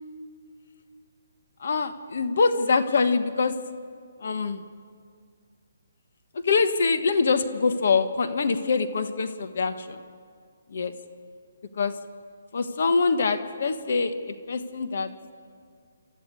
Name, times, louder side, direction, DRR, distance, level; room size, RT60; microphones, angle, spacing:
voice 1, 1.6-3.5 4.2-4.6 6.3-10.0 10.7-10.9 11.8-11.9 12.5-15.1, left 4 dB, 55° left, 9 dB, 1.3 m, -24 dB
28.0 x 13.5 x 9.7 m, 2.1 s
hypercardioid pair, 170°, 0 cm